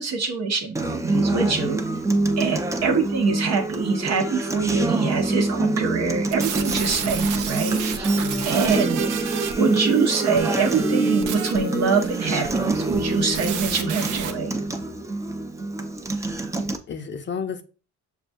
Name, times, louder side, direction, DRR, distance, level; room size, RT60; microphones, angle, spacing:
voice 1, 0.0-1.8 2.4-8.1 8.5-9.1 9.6-14.5, right 5 dB, 60° right, 0.8 m, -24 dB
Acoustic guitar, 0.8-16.8, right 2 dB, 10° right, 0.5 m, -26 dB
voice 2, 1.4-1.7 8.1-8.5 16.9-17.6, left 6 dB, 40° left, 0.6 m, -32 dB
sound 1, 6.3-14.3, right 7 dB, 85° right, 0.6 m, -32 dB
6.4 x 2.3 x 2.6 m
cardioid pair, 90°, 30 cm